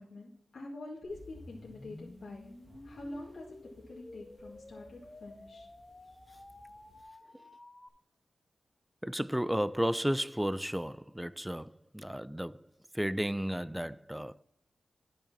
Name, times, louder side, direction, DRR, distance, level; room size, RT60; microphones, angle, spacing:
voice 1, 0.0-2.5 2.8-5.7, left 2 dB, 70° left, 1.8 m, -46 dB
sound 1, 1.0-7.9, left 2 dB, 30° left, 1.0 m, -52 dB
sound 2, 1.1-7.0, right 1 dB, 25° right, 1.5 m, -61 dB
voice 2, 9.0-12.7 12.9-14.4, equal, 5° right, 0.3 m, -33 dB
10.5 x 6.5 x 4.1 m
wide cardioid pair, 95°, 0 cm